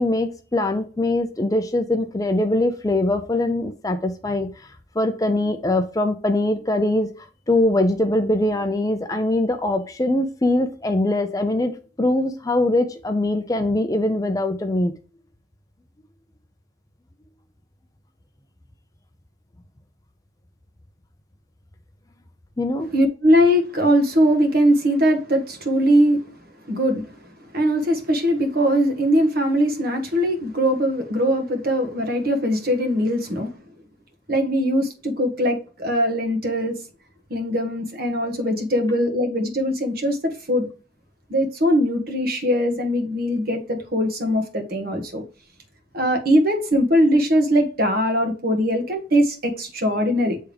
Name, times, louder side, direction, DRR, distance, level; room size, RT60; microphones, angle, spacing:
voice 1, 0.0-4.7 5.0-7.1 7.5-11.7 12.0-14.9 22.6-22.9, left 1 dB, 20° left, 0.4 m, -22 dB
voice 2, 22.9-26.2 26.7-27.2 27.5-33.6 34.3-36.8 37.3-40.7 41.3-45.2 45.9-50.4, equal, 50° right, 1.3 m, -21 dB
8.4 x 3.5 x 3.4 m
head